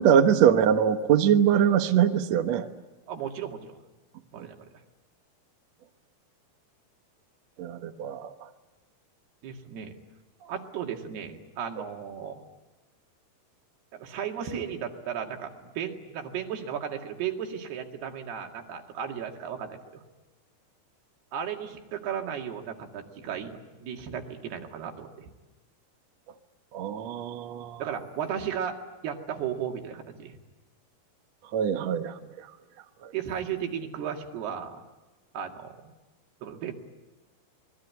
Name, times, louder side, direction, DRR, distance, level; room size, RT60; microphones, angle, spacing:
voice 1, 0.0-2.7 7.6-8.3 26.7-27.8 31.5-32.5 33.0-33.1, right 8 dB, 60° right, 7 dB, 2.0 m, -23 dB
voice 2, 3.1-3.8 4.3-4.7 9.4-10.0 10.4-12.4 13.9-20.0 21.3-25.3 27.8-30.4 33.1-34.8 35.3-35.8 36.4-36.7, right 8 dB, 85° right, 3 dB, 4.2 m, -35 dB
26.5 x 21.0 x 9.5 m, 1.1 s
omnidirectional pair, 4.4 m